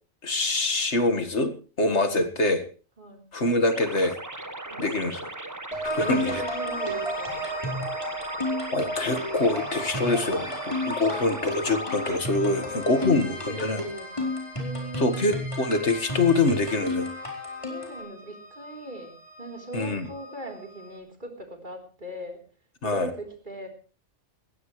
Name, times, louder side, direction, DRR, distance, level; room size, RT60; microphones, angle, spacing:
voice 1, 0.2-2.7 3.3-4.2 4.8-5.3 5.8-6.4 8.7-13.8 15.0-17.1 19.7-20.1 22.8-23.1, left 2 dB, 65° left, 8 dB, 2.1 m, -25 dB
voice 2, 2.0-2.4 3.0-3.3 4.7-5.2 6.0-7.4 12.6-12.7 13.0-15.4 17.7-22.4 22.8-23.7, right 1 dB, 40° right, 3 dB, 4.0 m, -40 dB
sound 1, 3.7-12.2, right 2 dB, 15° right, 1.3 m, -38 dB
sound 2, 5.7-18.0, left 2 dB, 25° left, 4.3 m, -33 dB
sound 3, 5.8-21.0, right 2 dB, 65° right, 5.9 m, -38 dB
19.5 x 16.0 x 3.2 m, 0.35 s
omnidirectional pair, 1.3 m